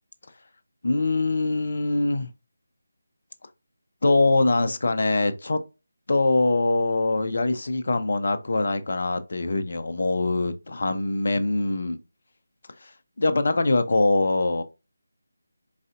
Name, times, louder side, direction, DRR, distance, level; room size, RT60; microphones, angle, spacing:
voice 1, 0.8-2.3 4.0-5.6 6.1-12.0 13.2-14.6, left 2 dB, 50° left, 0.5 m, -23 dB
4.0 x 3.8 x 2.4 m
figure-of-eight pair, 160°, 0 cm